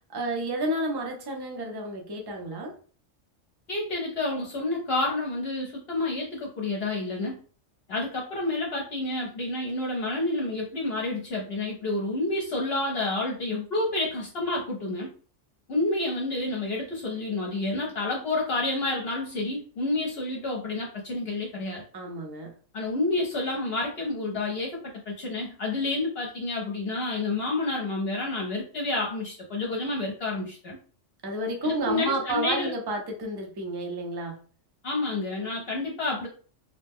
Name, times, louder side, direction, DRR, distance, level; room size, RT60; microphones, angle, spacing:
voice 1, 0.1-2.7 21.9-22.5 31.2-34.4, right 1 dB, 30° right, 1 dB, 0.4 m, -31 dB
voice 2, 3.7-7.4 7.9-15.1 15.7-21.8 22.7-24.8 25.1-30.8 31.6-32.7 34.8-36.3, left 2 dB, 60° left, -2 dB, 0.9 m, -29 dB
2.8 x 2.0 x 3.5 m, 0.40 s
omnidirectional pair, 1.3 m